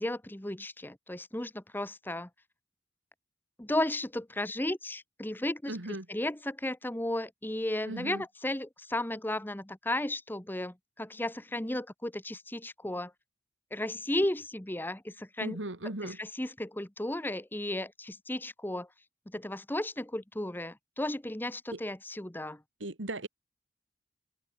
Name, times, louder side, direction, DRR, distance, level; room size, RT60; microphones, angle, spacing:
voice 1, 0.0-2.3 3.6-5.7 6.1-13.1 13.7-15.6 16.2-18.9 19.3-22.6, left 1 dB, 10° left, 1.1 m, -34 dB
voice 2, 5.7-6.1 7.8-8.2 15.4-16.2 21.7-21.8 22.8-23.3, right 1 dB, 85° right, 2.7 m, -37 dB
head